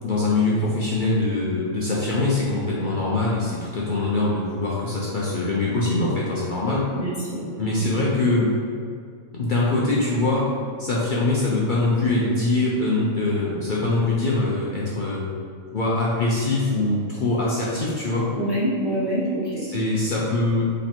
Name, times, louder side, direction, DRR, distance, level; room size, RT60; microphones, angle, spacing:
voice 1, 0.0-6.9 7.6-8.6 9.3-10.5 10.8-15.2 15.7-18.3 19.7-20.7, left 2 dB, 50° left, -5 dB, 0.6 m, -23 dB
voice 2, 7.0-7.9 18.4-19.6, equal, 25° right, -8 dB, 0.6 m, -26 dB
3.9 x 3.1 x 4.3 m, 2.3 s
omnidirectional pair, 1.4 m